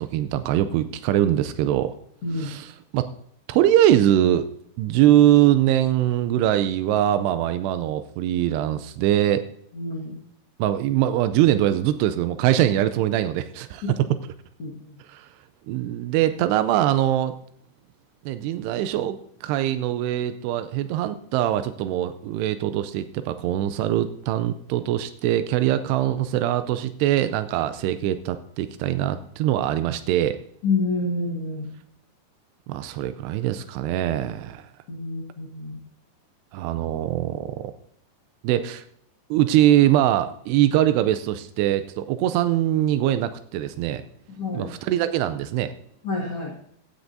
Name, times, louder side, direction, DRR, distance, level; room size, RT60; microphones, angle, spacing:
voice 1, 0.0-2.0 2.4-3.1 3.5-4.5 4.8-9.5 10.6-13.8 15.1-15.3 15.7-17.3 18.3-30.4 32.7-34.6 36.5-37.6 38.4-38.8 39.3-44.0 44.5-45.7, right 12 dB, 85° right, 11 dB, 2.4 m, -22 dB
voice 2, 9.7-10.2 13.8-13.9 14.6-14.9 30.6-31.7 34.9-35.8 44.3-44.7 46.0-46.5, left 3 dB, 55° left, -2 dB, 1.6 m, -28 dB
16.0 x 9.5 x 2.7 m, 0.69 s
omnidirectional pair, 5.4 m